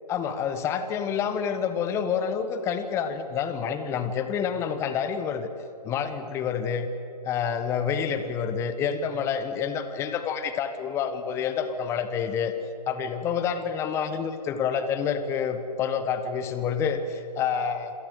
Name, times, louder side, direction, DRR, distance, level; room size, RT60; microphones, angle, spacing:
voice 1, 0.1-5.5 5.8-6.9 7.2-12.5 12.9-17.9, left 7 dB, 15° left, 10 dB, 1.1 m, -28 dB
27.0 x 17.5 x 8.1 m, 2.6 s
figure-of-eight pair, 135°, 21 cm